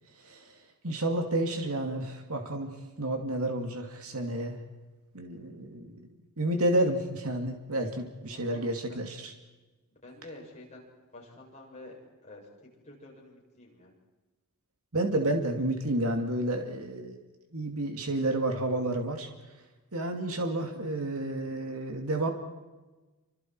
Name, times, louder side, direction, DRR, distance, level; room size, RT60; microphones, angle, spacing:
voice 1, 0.8-2.7 3.0-4.6 5.1-6.0 6.4-9.3 14.9-17.2 17.5-19.3 19.9-22.3, right 1 dB, 70° right, 3 dB, 2.5 m, -30 dB
voice 2, 8.3-8.7 10.0-10.9 11.1-12.0 12.2-13.9, left 2 dB, 30° left, -3 dB, 7.9 m, -49 dB
28.5 x 25.5 x 4.7 m, 1.2 s
head